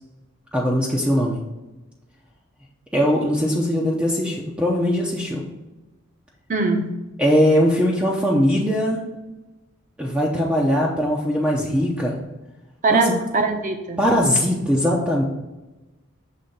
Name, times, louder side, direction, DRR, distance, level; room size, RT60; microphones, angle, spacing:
voice 1, 0.5-1.4 2.9-5.4 7.2-9.0 10.0-12.2 12.9-13.0 14.0-15.2, equal, 5° right, -3 dB, 0.7 m, -20 dB
voice 2, 6.5-6.9 12.8-14.0, right 3 dB, 40° right, 5 dB, 0.9 m, -21 dB
6.5 x 3.4 x 5.4 m, 1.1 s
head